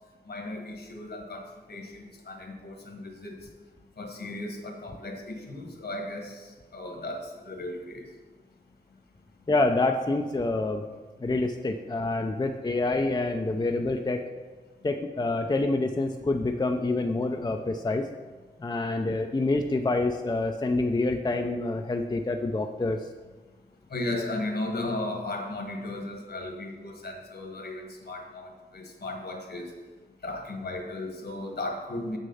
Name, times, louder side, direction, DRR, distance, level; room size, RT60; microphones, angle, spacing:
voice 1, 0.3-3.3 4.0-8.0 23.9-29.7 30.2-32.2, left 2 dB, 65° left, 3 dB, 1.5 m, -36 dB
voice 2, 9.5-10.8 11.2-14.2 14.8-18.1 18.6-23.0, left 2 dB, 25° left, 4 dB, 0.5 m, -27 dB
7.4 x 6.4 x 5.5 m, 1.3 s
wide cardioid pair, 105°, 18 cm